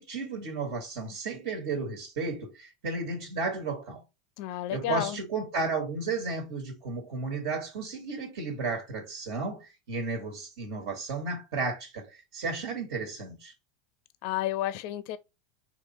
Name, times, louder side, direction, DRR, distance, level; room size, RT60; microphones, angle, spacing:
voice 1, 0.0-4.0 4.7-13.5, right 4 dB, 70° right, 1.6 m, -33 dB
voice 2, 4.4-5.2 14.2-15.2, left 14 dB, 60° left, 0.5 m, -31 dB
4.8 x 3.1 x 2.8 m
hypercardioid pair, 95°, 0 cm